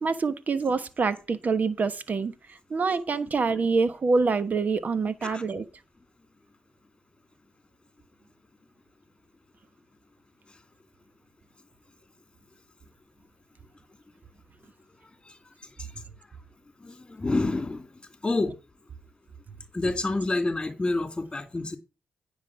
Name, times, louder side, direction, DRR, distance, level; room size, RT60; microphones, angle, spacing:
voice 1, 0.0-2.3 2.7-5.6, right 4 dB, 50° right, 1.2 m, -26 dB
voice 2, 16.8-17.9 18.2-18.5 19.7-21.8, left 2 dB, 20° left, 2.4 m, -28 dB
9.8 x 5.4 x 5.8 m
supercardioid pair, 50°, 4 cm